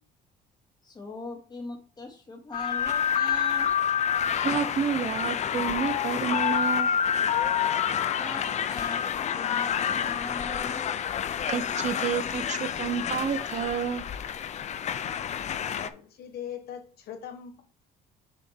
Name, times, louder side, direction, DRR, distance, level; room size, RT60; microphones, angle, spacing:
voice 1, 0.8-3.7 8.2-9.0 9.3-10.9, left 2 dB, 25° left, 2.1 m, -40 dB
sound 1, 2.5-15.9, left 8 dB, 45° left, 0.5 m, -28 dB
voice 2, 4.4-7.0 11.5-14.1, right 7 dB, 45° right, 0.8 m, -30 dB
voice 3, 14.9-17.6, left 8 dB, 70° left, 1.4 m, -42 dB
7.0 x 3.5 x 4.3 m
cardioid pair, 110°, 17 cm